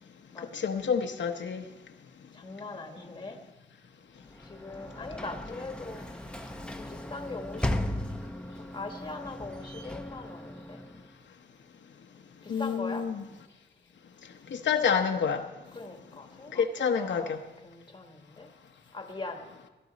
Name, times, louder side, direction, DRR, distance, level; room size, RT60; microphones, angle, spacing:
voice 1, 0.5-1.6 12.5-13.2 14.5-15.4 16.5-17.4, left 6 dB, 75° left, 4 dB, 0.9 m, -28 dB
voice 2, 2.3-3.4 4.5-6.0 6.8-7.8 8.7-10.8 12.4-13.1 15.7-17.4 17.6-18.5 18.9-19.4, left 3 dB, 25° left, 5 dB, 1.4 m, -41 dB
Sliding door / Slam, 4.2-11.2, left 1 dB, 5° left, 0.7 m, -37 dB
18.0 x 12.0 x 4.0 m, 1.1 s
wide cardioid pair, 135°, 19 cm